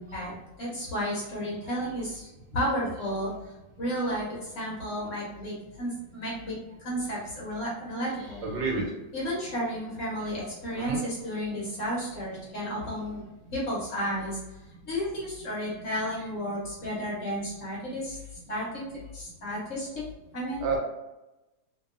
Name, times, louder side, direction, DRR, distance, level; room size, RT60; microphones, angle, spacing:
voice 1, 0.0-3.3 3.8-8.4 9.1-13.2 13.5-14.4 14.9-20.1 20.3-20.7, equal, 55° left, -5 dB, 0.9 m, -32 dB
voice 2, 8.4-8.8 10.7-11.0 20.6-20.8, right 4 dB, 85° right, -2 dB, 1.5 m, -28 dB
2.8 x 2.7 x 2.4 m, 1.0 s
omnidirectional pair, 1.9 m